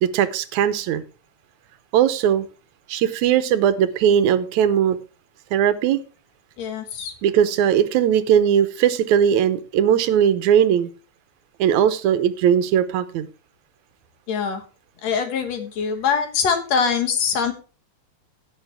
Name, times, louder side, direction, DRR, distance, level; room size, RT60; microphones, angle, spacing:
voice 1, 0.0-1.0 1.9-2.5 2.9-5.0 5.5-6.0 7.2-10.9 11.6-13.3, right 9 dB, 80° right, 13 dB, 2.2 m, -19 dB
voice 2, 6.6-7.1 14.3-14.6 15.0-17.5, left 6 dB, 65° left, 7 dB, 2.6 m, -23 dB
16.5 x 6.6 x 3.4 m, 0.35 s
omnidirectional pair, 3.3 m